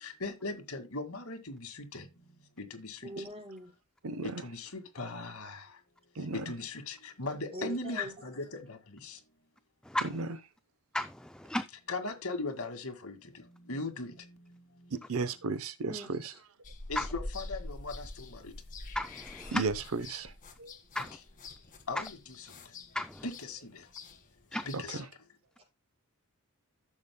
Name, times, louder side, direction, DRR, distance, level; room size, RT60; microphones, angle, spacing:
voice 1, 0.0-2.0 2.6-3.0 4.4-5.6 6.5-8.8 9.0-9.2 11.9-13.2 13.7-14.1 16.9-18.1 18.3-18.5 21.9-22.2 23.2-23.6 24.7-25.0, left 3 dB, 75° left, 2.1 m, -38 dB
voice 2, 3.0-3.8 7.5-8.3 15.8-16.4 25.6-25.7, right 1 dB, 25° right, 4.8 m, -43 dB
voice 3, 4.0-4.4 6.1-6.5 10.0-10.3 14.9-16.3 19.5-20.3 20.6-20.8 24.7-25.1, right 4 dB, 70° right, 0.8 m, -34 dB
voice 4, 10.9-11.6 17.0-17.1 19.0-19.6 21.0-21.2 22.9-23.2 24.5-24.7, left 1 dB, 5° left, 0.4 m, -34 dB
sound 1, 16.6-25.0, left 2 dB, 40° left, 1.9 m, -46 dB
14.5 x 7.1 x 2.2 m
head